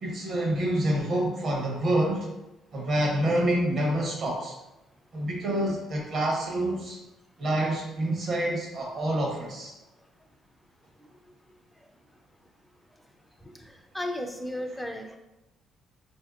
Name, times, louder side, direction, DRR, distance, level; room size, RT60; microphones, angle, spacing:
voice 1, 0.0-2.3 2.7-4.5 5.1-7.0 7.4-9.7, right 1 dB, 40° right, -1 dB, 0.8 m, -27 dB
voice 2, 13.6-15.2, left 1 dB, 5° left, 3 dB, 0.3 m, -34 dB
4.1 x 2.6 x 2.3 m, 0.95 s
cardioid pair, 160°, 0 cm